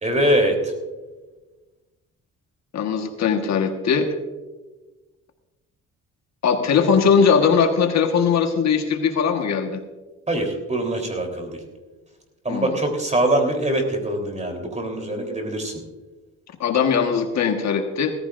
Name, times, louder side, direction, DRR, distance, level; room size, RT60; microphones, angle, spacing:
voice 1, 0.0-0.7 10.3-11.5 12.4-15.8, right 1 dB, 25° right, 3 dB, 3.5 m, -23 dB
voice 2, 2.7-4.1 6.4-9.8 12.5-12.7 16.6-18.1, left 6 dB, 65° left, 5 dB, 1.4 m, -20 dB
17.0 x 14.5 x 2.5 m, 1.2 s
cardioid pair, 90°, 30 cm